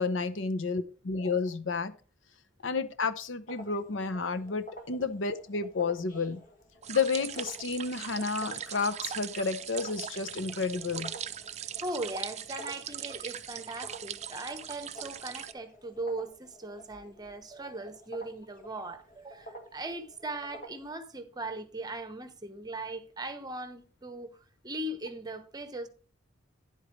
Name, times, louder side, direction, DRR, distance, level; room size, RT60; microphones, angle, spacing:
voice 1, 0.0-1.9 2.6-6.4 6.9-11.1, left 4 dB, 75° left, 0.8 m, -31 dB
sound 1, 3.5-20.9, right 1 dB, 45° left, 1.8 m, -50 dB
sound 2, 6.8-15.5, right 9 dB, 35° right, 0.5 m, -40 dB
voice 2, 11.8-24.3 24.6-25.9, right 2 dB, 20° right, 1.0 m, -39 dB
10.0 x 8.0 x 3.2 m
head